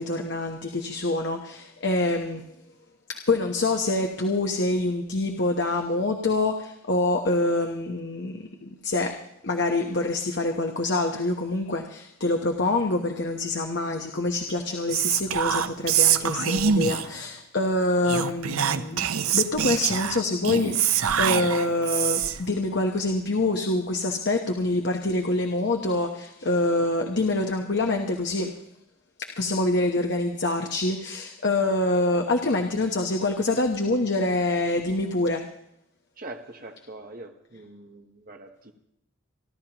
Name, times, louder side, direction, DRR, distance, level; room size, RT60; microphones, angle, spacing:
voice 1, 0.0-2.4 3.1-19.1 19.3-28.5 29.2-35.4, left 2 dB, 55° left, 3 dB, 1.0 m, -26 dB
Whispering, 14.9-17.2 18.0-22.5, right 8 dB, 90° right, 0.7 m, -24 dB
voice 2, 36.2-38.7, right 2 dB, 40° right, 5 dB, 1.1 m, -43 dB
28.5 x 12.5 x 3.0 m, 0.78 s
head